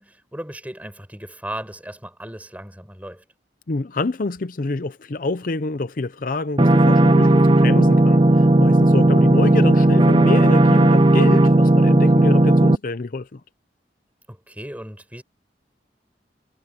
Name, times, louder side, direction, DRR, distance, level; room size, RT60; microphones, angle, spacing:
voice 1, 0.0-3.2 8.8-9.2 14.3-15.2, right 1 dB, 10° right, 6.6 m, -36 dB
voice 2, 3.7-13.4, left 2 dB, 50° left, 0.6 m, -27 dB
sound 1, 6.6-12.7, right 1 dB, 30° right, 0.6 m, -14 dB
head